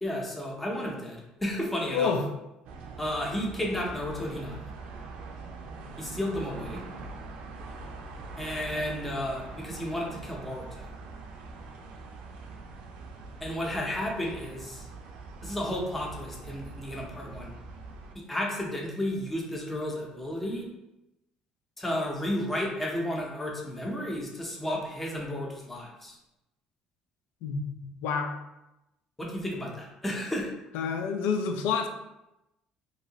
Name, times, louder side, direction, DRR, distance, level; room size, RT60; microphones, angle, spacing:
voice 1, 0.0-2.1 3.0-4.7 6.0-6.8 8.4-10.9 13.4-14.9 15.4-17.5 18.3-20.7 21.8-26.2 29.2-30.5, left 1 dB, 10° left, -2 dB, 0.6 m, -32 dB
voice 2, 1.9-2.2 27.4-28.3 30.7-31.9, left 6 dB, 85° left, 6 dB, 0.4 m, -28 dB
sound 1, 2.6-18.1, right 3 dB, 75° right, 0.4 m, -43 dB
3.0 x 2.7 x 2.8 m, 0.92 s
cardioid pair, 150°, 2 cm